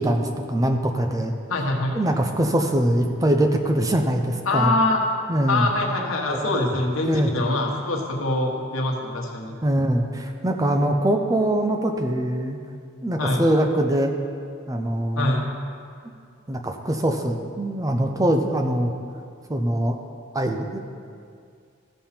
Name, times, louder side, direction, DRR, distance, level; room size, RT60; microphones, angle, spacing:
voice 1, 0.0-1.3 1.9-4.7 5.3-5.7 6.3-6.6 7.0-7.3 9.6-12.6 13.0-14.1 14.7-15.3 16.5-18.9 19.5-20.0 20.3-20.8, right 1 dB, 15° right, 4 dB, 0.5 m, -23 dB
voice 2, 1.5-1.9 4.5-5.0 5.5-9.6 13.2-13.4 15.1-15.5, left 2 dB, 80° left, 0 dB, 1.3 m, -24 dB
14.5 x 5.5 x 4.4 m, 2.3 s
head